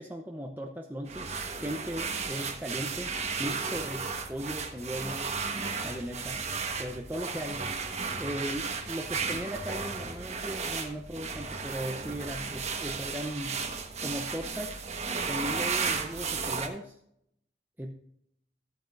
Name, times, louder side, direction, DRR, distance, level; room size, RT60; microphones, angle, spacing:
voice 1, 0.0-3.1 3.4-5.3 5.8-6.5 6.8-7.7 8.2-13.6 14.0-14.8 15.3-16.9 17.8-17.9, equal, 10° right, 1 dB, 0.7 m, -37 dB
sound 1, 1.1-16.7, right 5 dB, 40° right, 1.3 m, -34 dB
14.0 x 9.1 x 2.5 m, 0.73 s
head